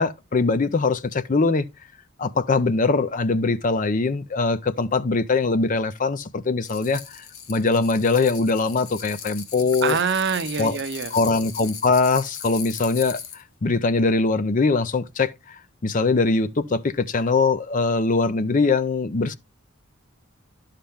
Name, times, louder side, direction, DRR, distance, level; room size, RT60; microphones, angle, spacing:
voice 1, 0.0-1.7 2.2-7.2 7.5-10.0 10.6-10.8 11.1-13.2 13.6-15.3 15.8-19.4, left 3 dB, 40° left, 0.5 m, -22 dB
sound 1, 6.6-13.4, left 7 dB, 90° left, 1.5 m, -38 dB
voice 2, 9.8-11.1, right 6 dB, 55° right, 0.7 m, -25 dB
11.5 x 5.7 x 3.5 m
head